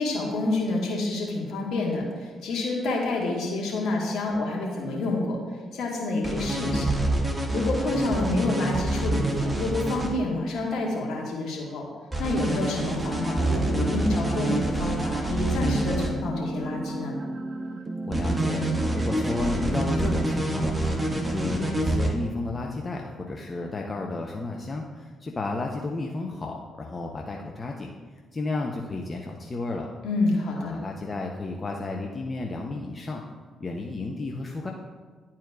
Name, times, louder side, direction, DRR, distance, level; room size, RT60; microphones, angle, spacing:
voice 1, 0.0-5.4 5.7-7.0 7.5-11.9 12.2-17.2 30.0-30.7, left 2 dB, 65° left, -1 dB, 1.5 m, -28 dB
sound 1, 6.2-10.1 12.1-16.1 18.1-22.1, right 1 dB, 15° right, 1.5 m, -27 dB
sound 2, 12.8-21.7, right 2 dB, 40° right, 0.8 m, -34 dB
voice 2, 18.1-18.6 18.9-27.9 28.3-29.9 30.6-33.2 33.6-34.7, left 3 dB, 35° left, 1 dB, 0.7 m, -32 dB
11.0 x 4.4 x 2.4 m, 1.5 s
hypercardioid pair, 40°, 0 cm